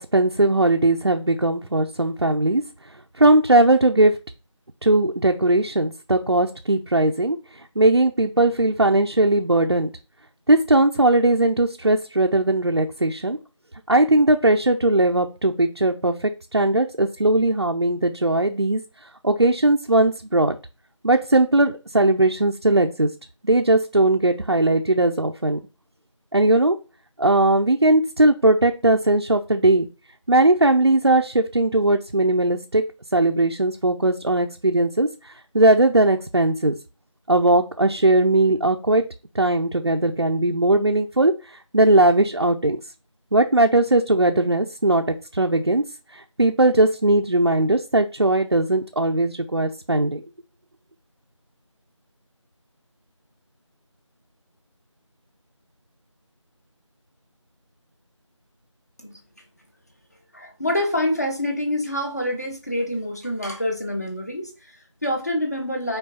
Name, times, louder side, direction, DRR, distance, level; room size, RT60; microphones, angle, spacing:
voice 1, 0.0-2.6 3.2-4.1 4.8-7.4 7.8-9.9 10.5-13.4 13.9-18.8 19.2-20.5 21.0-23.1 23.4-25.6 26.3-26.8 27.2-29.9 30.3-32.8 33.1-36.7 37.3-39.0 39.3-42.8 43.3-45.1 45.3-45.8 46.1-50.2, right 2 dB, 55° right, 2 dB, 0.7 m, -19 dB
voice 2, 60.3-66.0, left 1 dB, 30° left, 2 dB, 1.2 m, -26 dB
5.5 x 4.4 x 4.2 m, 0.31 s
figure-of-eight pair, 175°, 16 cm